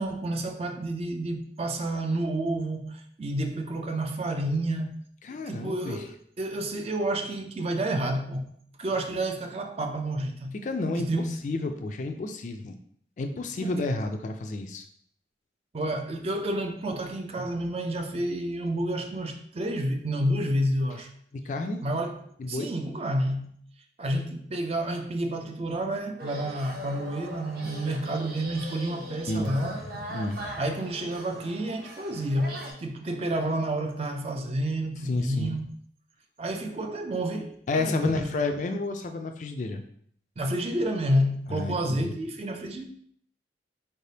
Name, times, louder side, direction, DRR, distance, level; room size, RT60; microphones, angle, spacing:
voice 1, 0.0-5.0 5.3-8.5 8.8-10.5 10.9-11.3 13.6-13.7 15.7-21.1 21.8-23.5 24.0-29.8 30.6-35.7 36.4-38.3 40.4-42.9, right 1 dB, 35° right, 0.4 m, -30 dB
voice 2, 5.2-6.0 10.6-12.8 13.2-14.8 21.3-21.8 22.4-22.7 29.3-29.6 29.9-30.6 35.1-35.6 37.7-39.8 41.5-42.1, left 2 dB, 40° left, 0.3 m, -31 dB
sound 1, 26.2-32.7, equal, 55° right, 0.8 m, -40 dB
4.4 x 3.3 x 2.7 m
head